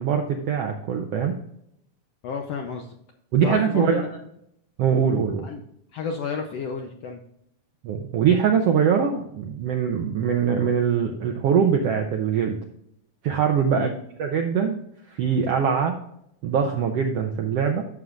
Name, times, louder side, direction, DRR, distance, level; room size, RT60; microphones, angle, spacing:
voice 1, 0.0-1.4 3.3-4.0 4.8-5.5 7.8-12.6 13.2-13.9 14.2-14.8 15.1-16.0 16.4-17.8, right 7 dB, 80° right, 3 dB, 1.4 m, -22 dB
voice 2, 2.2-2.9 3.4-4.2 5.4-5.6 5.9-7.2 13.7-14.0, left 5 dB, 75° left, 3 dB, 1.5 m, -31 dB
11.0 x 7.2 x 2.5 m, 0.73 s
omnidirectional pair, 3.7 m